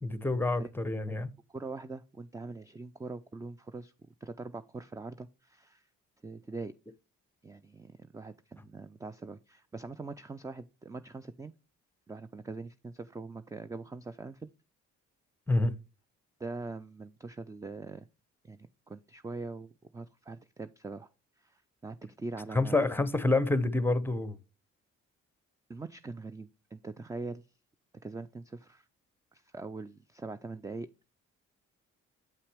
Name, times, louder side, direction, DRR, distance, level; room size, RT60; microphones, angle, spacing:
voice 1, 0.0-1.3 15.5-15.7 22.5-24.4, left 2 dB, 5° left, 0.8 m, -27 dB
voice 2, 1.5-3.9 4.2-5.9 6.2-6.7 7.4-11.5 12.1-14.5 16.4-18.1 18.4-21.1 21.4-22.8 25.7-27.5 28.0-28.9 29.3-30.9, right 3 dB, 10° right, 0.3 m, -42 dB
7.9 x 5.6 x 3.4 m
cardioid pair, 90°, 30 cm